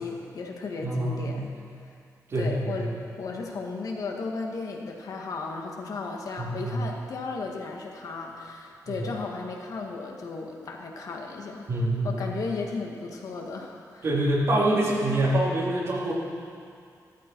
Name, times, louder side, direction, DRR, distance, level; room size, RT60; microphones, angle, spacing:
voice 1, 0.0-1.5 2.3-11.7 12.0-14.0, left 4 dB, 65° left, 1 dB, 1.7 m, -35 dB
voice 2, 0.8-1.4 2.3-2.9 6.4-6.8 8.9-9.1 11.7-12.3 14.0-16.1, right 1 dB, 45° right, -5 dB, 3.3 m, -26 dB
15.5 x 14.0 x 4.6 m, 2.3 s
wide cardioid pair, 150°, 6 cm